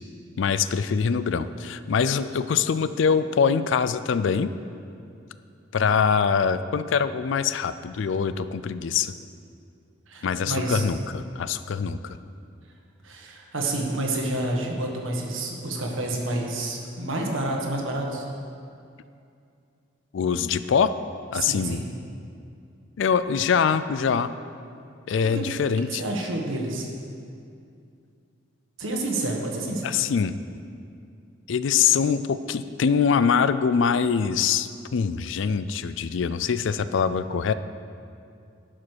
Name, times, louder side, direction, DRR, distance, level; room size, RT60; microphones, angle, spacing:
voice 1, 0.4-4.5 5.7-9.1 10.2-12.2 20.1-20.9 21.3-21.8 23.0-24.3 25.1-26.0 29.8-30.4 31.5-37.5, left 6 dB, 65° left, 13 dB, 0.4 m, -23 dB
voice 2, 10.1-10.8 13.0-18.2 21.3-21.8 25.3-25.4 25.9-26.9 28.8-29.9, right 2 dB, 75° right, 0 dB, 1.4 m, -29 dB
11.5 x 5.1 x 6.3 m, 2.5 s
head